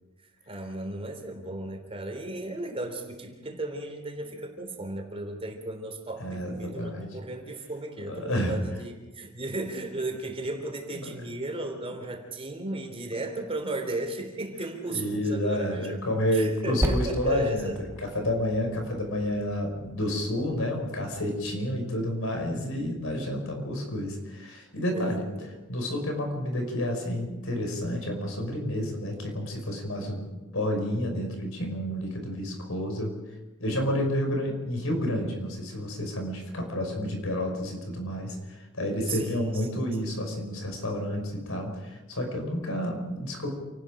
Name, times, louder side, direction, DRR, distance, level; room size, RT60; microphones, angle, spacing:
voice 1, 0.5-16.0 16.3-17.8 24.9-25.1 25.4-25.6 39.1-40.2, right 2 dB, 30° right, 4 dB, 3.6 m, -35 dB
voice 2, 6.2-7.1 8.1-8.6 10.9-11.0 14.9-17.7 18.0-25.2 25.7-33.2 33.6-43.5, left 1 dB, 70° left, 3 dB, 5.6 m, -30 dB
Percussion, 16.8-21.7, equal, 10° right, 1.7 m, -35 dB
28.5 x 19.0 x 5.1 m, 1.1 s
head